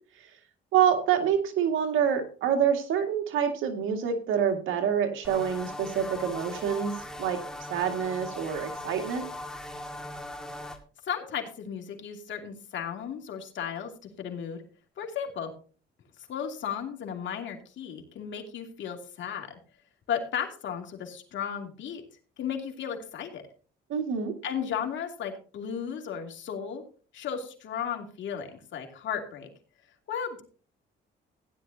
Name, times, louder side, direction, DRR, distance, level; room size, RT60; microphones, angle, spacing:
voice 1, 0.7-7.4 7.7-9.3 23.9-24.3, right 8 dB, 85° right, 5 dB, 2.1 m, -27 dB
sound 1, 5.2-10.8, left 1 dB, 5° left, 2.1 m, -39 dB
voice 2, 11.0-13.9 14.2-14.6 15.0-15.5 16.3-19.5 20.1-22.0 22.4-23.4 24.4-26.8 27.1-29.5 30.1-30.4, left 8 dB, 70° left, 3 dB, 2.6 m, -34 dB
16.0 x 10.5 x 2.8 m, 0.39 s
cardioid pair, 90°, 20 cm